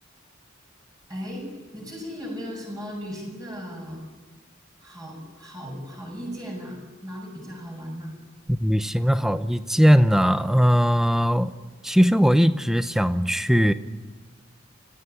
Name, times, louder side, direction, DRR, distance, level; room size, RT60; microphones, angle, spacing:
voice 1, 1.1-1.5 1.7-4.0 4.8-8.1, equal, 20° right, -1 dB, 6.7 m, -36 dB
voice 2, 8.5-11.5 11.8-13.7, equal, ahead, 11 dB, 0.7 m, -19 dB
25.5 x 17.5 x 9.1 m, 1.4 s
head